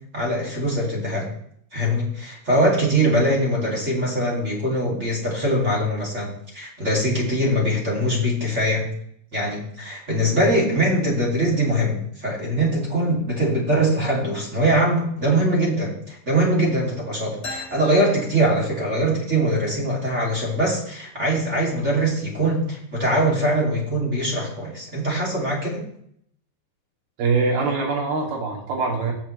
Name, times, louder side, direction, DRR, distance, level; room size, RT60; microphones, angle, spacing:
voice 1, 0.1-1.3 1.7-8.9 9.3-25.8, right 1 dB, 20° right, -3 dB, 2.4 m, -22 dB
sound 1, 17.4-19.1, left 2 dB, 25° left, 1.7 m, -39 dB
voice 2, 27.2-29.1, right 4 dB, 90° right, -2 dB, 4.5 m, -23 dB
17.5 x 7.7 x 3.2 m, 0.68 s
omnidirectional pair, 4.2 m